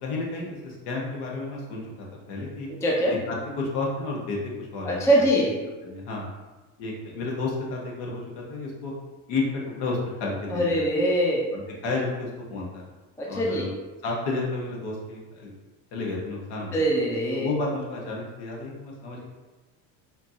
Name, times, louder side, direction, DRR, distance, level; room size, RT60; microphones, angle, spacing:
voice 1, 0.0-2.7 3.3-5.2 5.8-6.3 6.8-8.9 9.3-10.8 11.5-12.8 13.3-13.7 14.0-15.5 15.9-16.8 17.3-19.3, left 3 dB, 65° left, -2 dB, 1.3 m, -31 dB
voice 2, 2.7-3.2 4.8-5.6 10.5-11.5 13.2-13.7 16.7-17.5, right 1 dB, 5° left, -2 dB, 0.5 m, -23 dB
4.3 x 2.8 x 2.7 m, 1.2 s
supercardioid pair, 110°, 43 cm